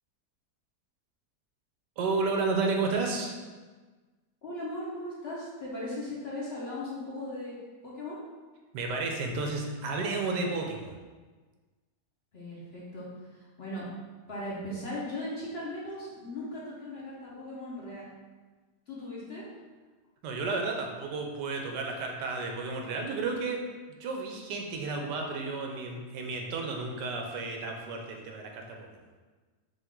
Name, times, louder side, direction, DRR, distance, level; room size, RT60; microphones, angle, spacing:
voice 1, 2.0-3.3 8.7-10.9 20.2-23.6 23.9-28.9, right 3 dB, 85° right, 2 dB, 1.3 m, -32 dB
voice 2, 4.4-7.6 7.8-8.2 12.3-13.9 14.3-18.1 18.9-19.4, left 1 dB, 45° left, -7 dB, 1.0 m, -38 dB
5.3 x 2.6 x 3.7 m, 1.4 s
omnidirectional pair, 1.8 m